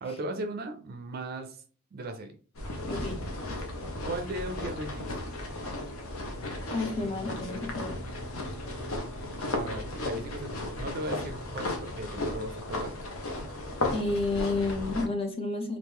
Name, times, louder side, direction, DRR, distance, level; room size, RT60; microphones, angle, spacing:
voice 1, 0.0-1.6 1.9-2.4 4.0-5.2 9.5-12.9, right 1 dB, 45° right, 7 dB, 0.4 m, -37 dB
sound 1, 2.6-15.1, left 2 dB, 75° left, 0.8 m, -35 dB
voice 2, 2.9-3.2 6.7-8.0 13.9-15.8, left 3 dB, 25° left, 4 dB, 0.5 m, -30 dB
Bowed string instrument, 6.6-13.2, equal, 50° left, 1.5 m, -50 dB
3.0 x 2.5 x 3.5 m, 0.40 s
head